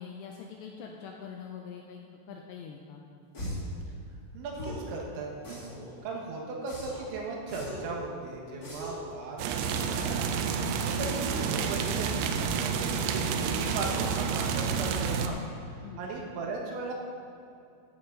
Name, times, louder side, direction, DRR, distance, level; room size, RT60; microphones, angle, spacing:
voice 1, 0.0-2.0 2.3-3.0 10.6-10.7 13.0-13.4 15.8-16.0, left 6 dB, 85° left, 1 dB, 2.6 m, -44 dB
sound 1, 3.3-3.7 4.5-4.9 5.4-5.9 6.7-7.1 7.5-7.9 8.6-9.1 9.7-10.1, equal, 30° left, 1.8 m, -39 dB
voice 2, 4.3-5.7 6.0-10.2 10.8-12.5 13.0-15.5 16.0-16.9, right 3 dB, 70° right, -1 dB, 3.5 m, -37 dB
sound 2, 9.4-15.3, right 6 dB, 85° right, 2.5 m, -29 dB
14.5 x 10.0 x 3.9 m, 2.6 s
omnidirectional pair, 5.7 m